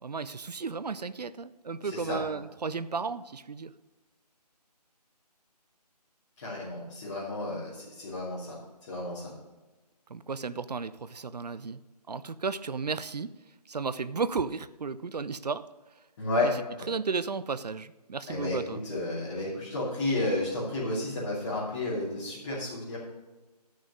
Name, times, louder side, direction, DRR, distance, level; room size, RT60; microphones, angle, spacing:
voice 1, 0.0-3.7 10.1-11.8 12.1-13.3 13.7-15.7 16.4-16.5 16.9-18.8, right 5 dB, 70° right, 15 dB, 0.6 m, -34 dB
voice 2, 1.8-2.2 6.4-8.6 8.9-9.3 16.2-16.5 16.8-16.9 18.3-18.6 18.8-23.0, left 2 dB, 30° left, -10 dB, 3.0 m, -32 dB
11.5 x 6.4 x 5.4 m, 1.2 s
figure-of-eight pair, 155°, 21 cm